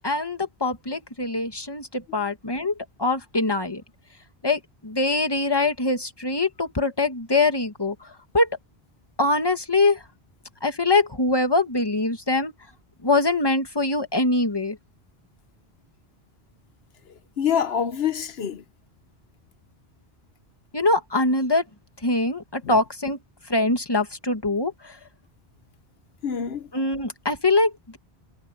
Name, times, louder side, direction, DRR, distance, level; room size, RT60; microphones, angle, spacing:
voice 1, 0.0-3.8 4.4-8.1 8.3-8.5 9.2-10.0 10.6-12.5 13.0-14.8 20.7-21.7 22.0-23.2 23.5-25.0 26.7-28.0, left 2 dB, 25° left, 1.9 m, -23 dB
voice 2, 17.1-18.6 22.6-22.8 26.2-26.7, left 8 dB, 80° left, 1.1 m, -26 dB
omnidirectional pair, 1.0 m